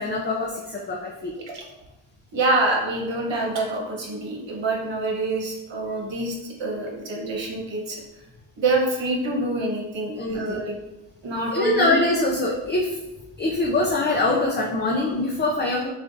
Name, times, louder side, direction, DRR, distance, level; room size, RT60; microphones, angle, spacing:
voice 1, 0.0-1.3 10.2-10.6 11.5-13.0 13.4-15.9, left 2 dB, 25° left, -1 dB, 0.4 m, -23 dB
voice 2, 2.3-8.0 8.6-10.7 11.2-12.0, right 2 dB, 65° right, 0 dB, 1.1 m, -26 dB
6.6 x 2.5 x 2.6 m, 0.99 s
wide cardioid pair, 135°, 48 cm